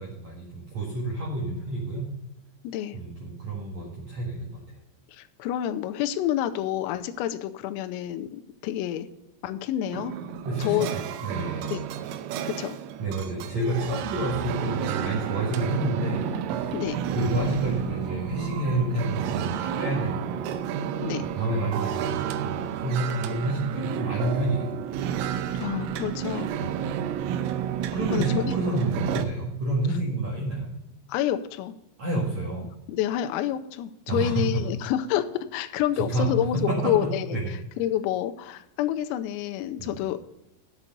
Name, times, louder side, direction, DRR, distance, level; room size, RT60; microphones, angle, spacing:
voice 1, 0.0-2.1 2.9-4.6 10.4-11.7 13.0-16.3 17.1-20.5 21.2-24.7 26.6-27.1 27.9-30.7 32.0-32.7 34.1-34.5 36.1-36.3 36.6-37.5 39.8-40.0, right 2 dB, 65° right, -3 dB, 1.8 m, -29 dB
voice 2, 2.7-3.0 5.1-9.1 9.4-10.2 10.6-10.9 11.7-11.8 12.5-12.8 16.7-17.0 21.0-21.3 25.6-26.5 28.1-28.6 31.1-31.7 32.9-37.3 37.8-40.2, left 11 dB, 85° left, 9 dB, 3.4 m, -28 dB
sound 1, 9.9-29.3, right 9 dB, 85° right, 3.2 m, -31 dB
9.9 x 8.1 x 5.2 m, 0.91 s
omnidirectional pair, 5.9 m